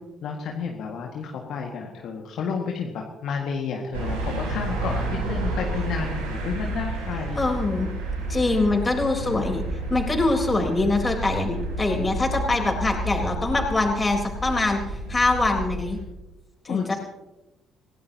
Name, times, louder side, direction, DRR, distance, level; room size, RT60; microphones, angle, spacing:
voice 1, 0.2-7.4 9.2-9.4 16.7-16.9, left 5 dB, 55° left, 0 dB, 1.8 m, -31 dB
sound 1, 3.9-16.0, right 2 dB, 75° right, 3.7 m, -30 dB
voice 2, 7.4-7.9 8.3-9.6 9.9-14.8 15.1-16.0 16.6-16.9, left 3 dB, 25° left, 2 dB, 3.9 m, -23 dB
27.0 x 17.0 x 2.9 m, 1.0 s
figure-of-eight pair, 50°, 0 cm